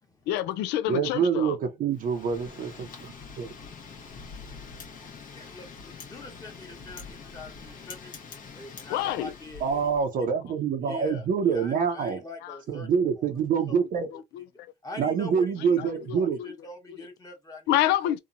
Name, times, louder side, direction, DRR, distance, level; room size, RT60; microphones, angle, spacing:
voice 1, 0.3-1.6 8.9-9.3 12.4-12.6 13.5-13.6 14.1-14.4 15.8-16.5 16.9-17.1 17.7-18.2, left 13 dB, 90° left, 0.4 m, -28 dB
voice 2, 0.9-2.9 3.4-3.5 9.6-12.2 12.7-14.1 15.0-16.4, right 6 dB, 55° right, 0.6 m, -26 dB
Wind, 1.9-10.1, left 5 dB, 55° left, 0.9 m, -45 dB
voice 3, 5.3-8.1 8.5-9.9 10.2-10.3 10.8-12.9 13.2-13.3 13.7-13.8 14.5-17.7 18.0-18.1, left 2 dB, 20° left, 1.1 m, -44 dB
2.9 x 2.2 x 2.5 m
cardioid pair, 110°, 17 cm